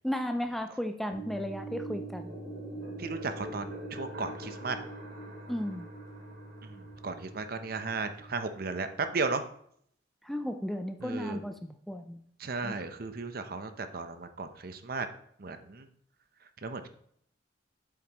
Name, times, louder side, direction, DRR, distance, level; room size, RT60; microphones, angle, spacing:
voice 1, 0.0-2.4 5.5-5.9 10.2-12.2 12.6-12.8, equal, ahead, 7 dB, 0.4 m, -34 dB
sound 1, 1.1-8.3, right 3 dB, 15° right, 3.1 m, -45 dB
sound 2, 1.5-8.1, left 1 dB, 80° right, 2.5 m, -46 dB
voice 2, 3.0-4.8 6.6-9.4 11.0-11.4 12.4-15.1 15.4-15.9 16.4-16.9, right 4 dB, 55° right, 9 dB, 0.7 m, -35 dB
8.1 x 7.4 x 3.0 m, 0.66 s
head